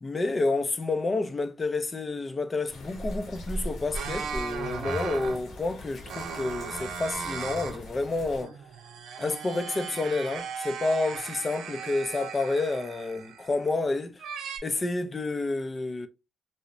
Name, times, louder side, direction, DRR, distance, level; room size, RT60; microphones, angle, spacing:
voice 1, 0.0-8.6 9.2-14.2 14.6-16.1, left 3 dB, 30° left, 0.4 m, -29 dB
sound 1, 2.7-8.4, equal, 75° left, 0.8 m, -40 dB
sound 2, 3.9-5.5 6.1-7.8 8.2-13.7 14.2-14.6, right 6 dB, 85° right, 0.5 m, -37 dB
2.9 x 2.0 x 2.4 m
cardioid pair, 80°, 0 cm